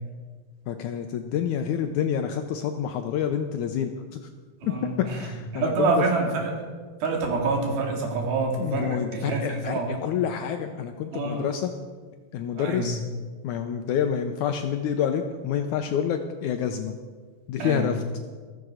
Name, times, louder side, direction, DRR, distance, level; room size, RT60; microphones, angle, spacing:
voice 1, 0.7-3.9 4.2-4.3 4.6-4.7 5.1-5.9 8.6-11.7 12.3-13.0 13.4-16.9 17.5-18.0, left 8 dB, 80° left, 6 dB, 1.8 m, -28 dB
voice 2, 4.6-5.3 5.5-6.5 7.0-10.0 11.1-11.5 12.6-12.9 17.6-17.9, right 3 dB, 90° right, 1 dB, 4.1 m, -27 dB
14.5 x 14.0 x 4.9 m, 1.5 s
omnidirectional pair, 4.2 m